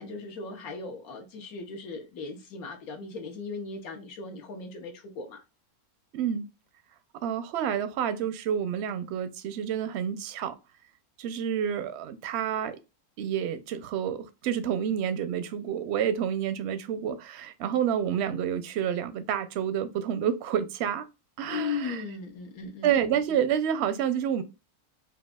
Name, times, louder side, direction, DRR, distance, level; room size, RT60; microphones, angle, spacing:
voice 1, 0.0-5.4 21.5-22.9, left 4 dB, 80° left, 1.4 m, -37 dB
voice 2, 6.1-6.5 7.2-10.6 11.2-12.8 13.2-21.1 21.4-22.0 22.8-24.4, right 9 dB, 65° right, 0.7 m, -29 dB
5.2 x 2.5 x 2.2 m
omnidirectional pair, 1.5 m